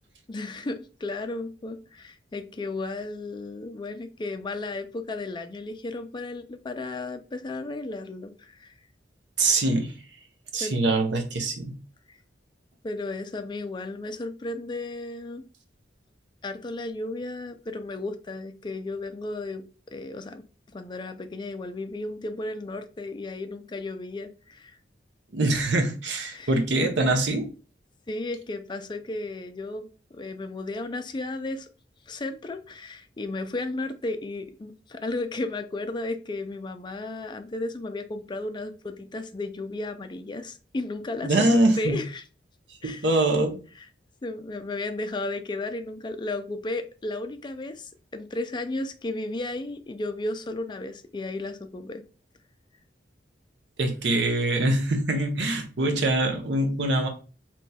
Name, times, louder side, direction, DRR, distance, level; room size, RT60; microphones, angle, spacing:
voice 1, 0.3-8.7 10.6-10.7 12.1-12.2 12.8-15.4 16.4-19.6 19.9-20.4 20.7-24.8 26.3-26.5 28.1-29.9 30.1-31.7 32.1-42.2 42.8-43.1 43.8-43.9 44.2-52.0, left 2 dB, 25° left, 8 dB, 0.4 m, -34 dB
voice 2, 9.4-10.0 10.5-11.7 25.3-27.5 41.2-42.0 42.8-43.6 53.8-57.1, right 2 dB, 80° right, 3 dB, 0.8 m, -24 dB
4.2 x 3.0 x 2.3 m, 0.36 s
head